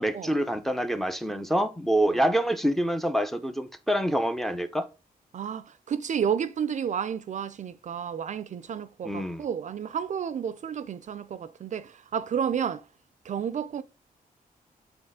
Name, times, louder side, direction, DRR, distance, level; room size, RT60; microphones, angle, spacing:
voice 1, 0.0-4.8 9.0-9.5, right 1 dB, ahead, 0.5 m, -26 dB
voice 2, 5.3-12.8 13.2-13.8, right 8 dB, 50° right, 0.4 m, -31 dB
7.8 x 4.0 x 3.6 m
wide cardioid pair, 130°, 16 cm